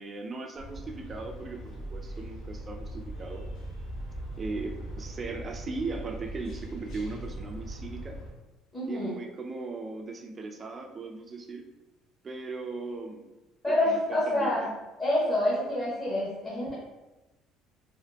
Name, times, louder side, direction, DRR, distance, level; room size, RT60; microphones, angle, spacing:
voice 1, 0.0-3.5 4.4-8.2 8.8-11.7 12.2-13.3 13.7-14.7, right 3 dB, 25° right, 4 dB, 0.3 m, -38 dB
sound 1, 0.6-8.3, right 1 dB, 70° left, 0.9 m, -40 dB
voice 2, 8.7-9.1 13.6-14.7 15.0-16.7, left 1 dB, 20° left, -9 dB, 1.0 m, -27 dB
3.8 x 2.5 x 2.2 m, 1.0 s
cardioid pair, 135°, 0 cm